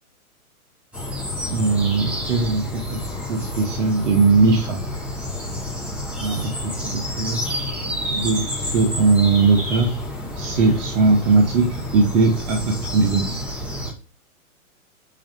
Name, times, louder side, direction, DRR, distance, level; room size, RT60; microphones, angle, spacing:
sound 1, 0.9-13.9, left 1 dB, 5° right, 0.6 m, -29 dB
voice 1, 1.5-4.8 6.2-7.4 8.1-10.0 10.4-11.7 11.9-13.3, right 4 dB, 55° right, 1 dB, 1.0 m, -19 dB
5.6 x 2.4 x 3.7 m, 0.38 s
hypercardioid pair, 130°, 44 cm